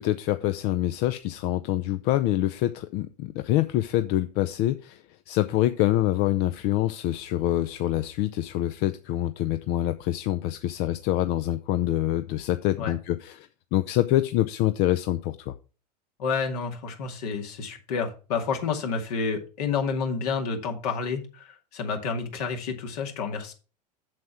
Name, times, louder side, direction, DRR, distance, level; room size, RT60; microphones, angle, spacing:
voice 1, 0.0-15.5, left 14 dB, 50° left, 10 dB, 0.7 m, -26 dB
voice 2, 16.2-23.5, left 5 dB, 65° left, 4 dB, 2.2 m, -29 dB
7.6 x 7.4 x 4.4 m, 0.34 s
hypercardioid pair, 85°, 21 cm